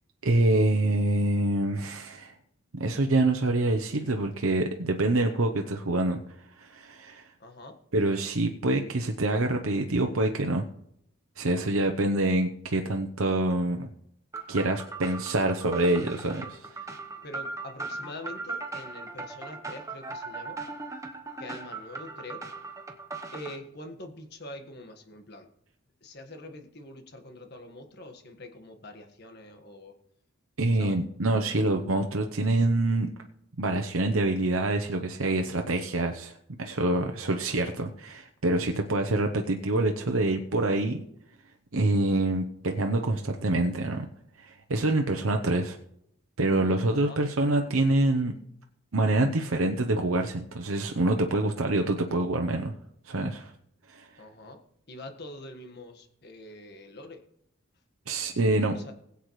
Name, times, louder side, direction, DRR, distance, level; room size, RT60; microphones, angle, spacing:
voice 1, 0.2-2.3 2.7-6.2 6.6-7.3 7.9-10.6 11.4-13.9 14.5-16.7 30.6-33.1 33.6-41.0 41.7-44.1 44.4-45.8 46.4-48.3 48.9-52.7 53.1-53.5 53.9-54.1 58.1-58.8, right 2 dB, 80° right, 4 dB, 0.9 m, -26 dB
voice 2, 7.4-7.8 17.2-20.6 21.4-22.4 23.3-25.5 26.0-29.9 30.8-31.0 46.9-47.2 54.2-54.6 54.9-57.2 58.7-58.9, left 1 dB, 50° left, 5 dB, 1.6 m, -44 dB
sound 1, 14.3-23.6, right 3 dB, 15° right, 1.0 m, -39 dB
20.5 x 8.2 x 3.2 m, 0.76 s
head